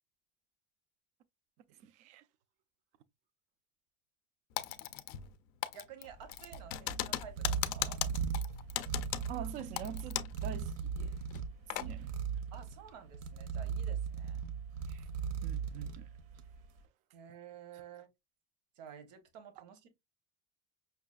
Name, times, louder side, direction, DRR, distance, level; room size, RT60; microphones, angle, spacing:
voice 1, 1.8-2.2 9.3-11.2 11.7-12.1 14.9-15.1 15.4-16.1, right 9 dB, 35° right, 0.4 m, -45 dB
Typing, 4.6-5.4 5.6-10.4 10.7-10.8 11.3-11.9, left 14 dB, 45° left, 0.4 m, -38 dB
voice 2, 5.7-8.0 12.5-14.4 17.1-18.1 18.8-19.9, right 8 dB, 90° right, 1.0 m, -52 dB
sound 1, 6.1-16.7, right 6 dB, 65° right, 0.7 m, -38 dB
5.6 x 2.4 x 2.3 m
cardioid pair, 175°, 20 cm